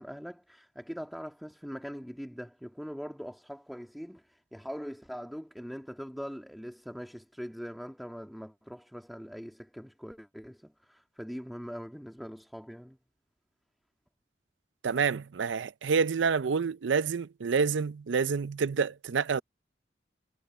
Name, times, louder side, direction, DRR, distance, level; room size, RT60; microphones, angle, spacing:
voice 1, 0.0-13.0, equal, ahead, 1.7 m, -42 dB
voice 2, 14.8-19.4, right 5 dB, 85° right, 0.5 m, -28 dB
head